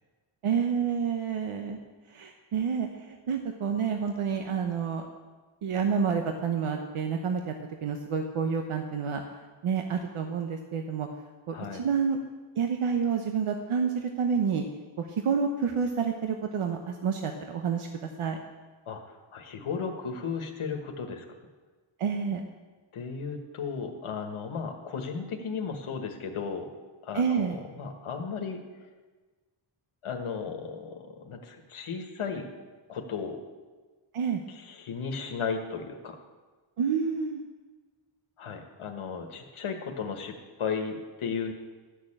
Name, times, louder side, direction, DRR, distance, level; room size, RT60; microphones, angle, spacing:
voice 1, 0.4-1.8 2.1-5.1 5.6-7.5 7.8-9.2 9.6-11.1 11.5-12.2 12.6-14.6 15.0-17.9 18.2-18.4 22.0-22.4 27.1-27.6 34.1-34.4 36.8-37.4, right 6 dB, 90° right, 4 dB, 1.0 m, -29 dB
voice 2, 18.9-21.2 22.9-26.7 27.0-28.6 30.0-32.5 32.9-33.4 34.5-36.2 38.4-41.5, left 5 dB, 85° left, 3 dB, 1.5 m, -35 dB
13.0 x 6.6 x 8.7 m, 1.3 s
wide cardioid pair, 160°, 49 cm